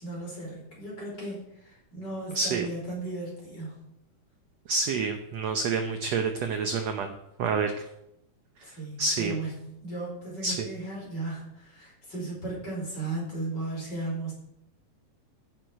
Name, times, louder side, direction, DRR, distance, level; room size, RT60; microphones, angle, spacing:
voice 1, 0.0-3.7 8.6-14.3, right 2 dB, 30° left, -3 dB, 5.5 m, -36 dB
voice 2, 2.4-2.7 4.7-7.1 7.4-7.7 9.0-9.3 10.4-10.6, right 4 dB, 65° right, 6 dB, 1.7 m, -28 dB
15.5 x 10.5 x 4.6 m, 0.84 s
omnidirectional pair, 3.9 m